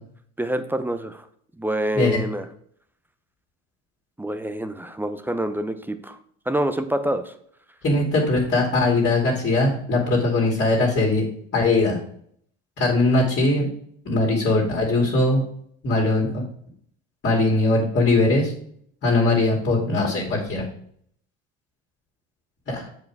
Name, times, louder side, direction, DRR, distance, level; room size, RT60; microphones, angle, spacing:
voice 1, 0.4-1.2 1.6-2.4 4.2-6.2 6.5-7.3, right 1 dB, 5° right, 10 dB, 0.6 m, -26 dB
voice 2, 7.8-11.3 11.5-12.0 12.8-13.6 14.0-15.4 15.8-16.4 17.2-18.5 19.0-20.6 22.7-22.9, left 2 dB, 35° left, -2 dB, 2.5 m, -20 dB
7.3 x 4.9 x 4.7 m, 0.64 s
supercardioid pair, 115°, 33 cm